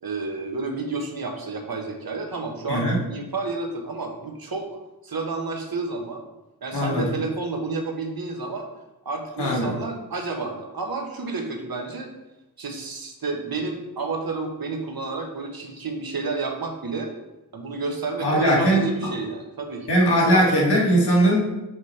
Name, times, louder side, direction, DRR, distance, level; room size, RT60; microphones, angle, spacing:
voice 1, 0.0-4.7 5.0-6.2 6.6-8.7 9.0-12.1 12.6-17.1 17.5-19.9, right 3 dB, 65° right, 3 dB, 1.2 m, -30 dB
voice 2, 6.7-7.1 9.4-9.7 18.2-19.1 19.9-21.4, right 1 dB, 90° left, -4 dB, 1.9 m, -20 dB
6.3 x 4.9 x 4.2 m, 1.0 s
wide cardioid pair, 60°, 39 cm